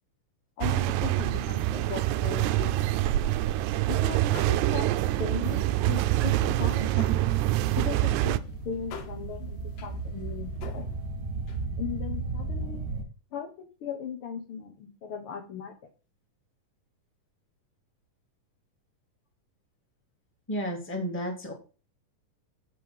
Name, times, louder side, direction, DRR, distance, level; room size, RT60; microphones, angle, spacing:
voice 1, 0.6-3.0 3.9-4.9 5.2-7.2 7.7-10.9 11.8-12.8 13.3-15.7, left 8 dB, 60° left, 3 dB, 1.6 m, -38 dB
sound 1, 0.6-8.4, right 15 dB, 80° right, 1.7 m, -25 dB
sound 2, 3.5-3.8 4.1-5.0 5.3-7.6 7.8-11.7, left 7 dB, 80° left, 2.9 m, -48 dB
sound 3, 5.9-13.0, right 3 dB, 50° right, 0.8 m, -36 dB
voice 2, 20.5-21.5, equal, 5° left, 0 dB, 1.9 m, -32 dB
8.3 x 5.5 x 5.2 m, 0.33 s
omnidirectional pair, 3.8 m